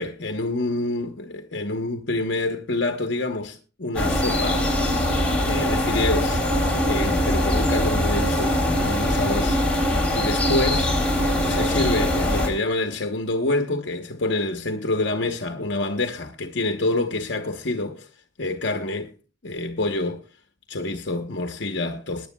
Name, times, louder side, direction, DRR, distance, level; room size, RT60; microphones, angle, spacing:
voice 1, 0.0-4.6 5.4-6.4 6.9-9.6 10.1-10.9 11.4-18.1 18.4-19.1 19.4-20.2 20.7-22.3, left 2 dB, 65° left, 0.9 m, -27 dB
sound 1, 4.0-12.5, left 1 dB, 5° left, 3.3 m, -22 dB
21.0 x 10.5 x 2.3 m
head